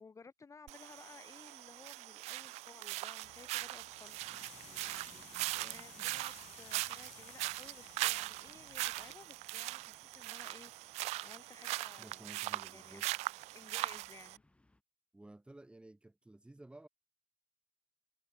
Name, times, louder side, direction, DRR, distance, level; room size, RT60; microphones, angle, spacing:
voice 1, 0.0-4.2 4.7-5.1 5.5-10.7 11.2-12.3 12.7-13.0 13.5-14.4, left 5 dB, 25° left, 4.9 m, -57 dB
sound 1, 0.7-14.4, right 19 dB, 70° right, 0.5 m, -40 dB
sound 2, 3.2-9.1, left 15 dB, 65° left, 4.5 m, -58 dB
sound 3, 4.2-14.8, left 2 dB, 10° left, 7.0 m, -67 dB
voice 2, 4.6-5.6 6.0-6.2 12.0-13.1 15.1-16.9, right 2 dB, 10° right, 2.1 m, -56 dB
supercardioid pair, 95°, 12 cm